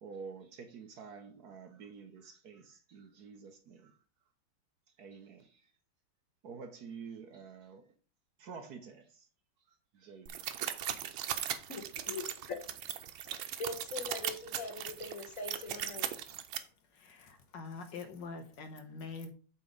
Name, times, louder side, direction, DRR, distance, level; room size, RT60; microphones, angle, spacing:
voice 1, 0.0-4.0 5.0-5.6 6.4-7.9 8.4-9.3 9.9-10.4, right 5 dB, 60° right, 1.2 m, -49 dB
sound 1, 10.3-16.6, right 10 dB, 90° right, 1.6 m, -38 dB
voice 2, 11.7-12.7 13.3-16.1, left 3 dB, 45° left, 1.4 m, -42 dB
voice 3, 16.9-19.3, left 4 dB, 65° left, 1.7 m, -45 dB
8.3 x 4.2 x 5.1 m
omnidirectional pair, 2.2 m